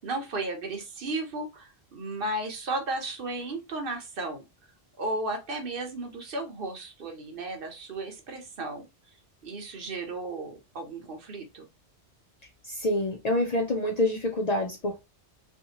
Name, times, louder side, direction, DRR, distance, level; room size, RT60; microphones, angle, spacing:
voice 1, 0.0-4.4 5.0-8.8 9.4-11.7, right 2 dB, 60° right, 0.9 m, -34 dB
voice 2, 12.7-15.0, left 1 dB, 50° left, 0.5 m, -26 dB
2.6 x 2.5 x 2.7 m
omnidirectional pair, 1.1 m